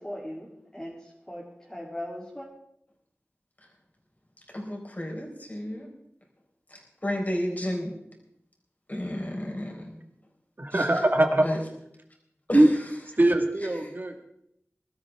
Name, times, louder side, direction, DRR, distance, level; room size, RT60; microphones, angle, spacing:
voice 1, 0.0-2.5, left 1 dB, 15° left, -5 dB, 3.1 m, -39 dB
voice 2, 4.5-5.9 6.7-7.9 8.9-10.0 10.7-10.9 11.4-11.6 12.5-12.8, left 1 dB, 35° left, 0 dB, 4.4 m, -32 dB
voice 3, 10.6-11.4 12.5-12.7 13.2-14.2, right 1 dB, 45° right, 4 dB, 1.8 m, -21 dB
22.0 x 13.0 x 3.6 m, 0.76 s
wide cardioid pair, 55°, 5 cm